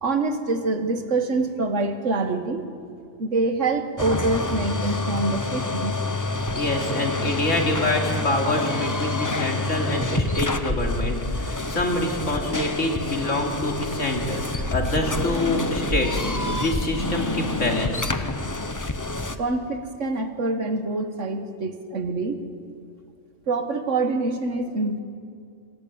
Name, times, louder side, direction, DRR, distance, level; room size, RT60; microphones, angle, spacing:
voice 1, 0.0-2.7 3.2-6.0 19.4-22.4 23.5-25.0, right 3 dB, 75° right, 7 dB, 1.9 m, -25 dB
sound 1, 4.0-19.4, left 2 dB, 15° left, 0.9 m, -27 dB
voice 2, 6.5-18.1, left 1 dB, 85° left, 1 dB, 3.2 m, -26 dB
26.0 x 19.5 x 8.8 m, 2.4 s
omnidirectional pair, 1.3 m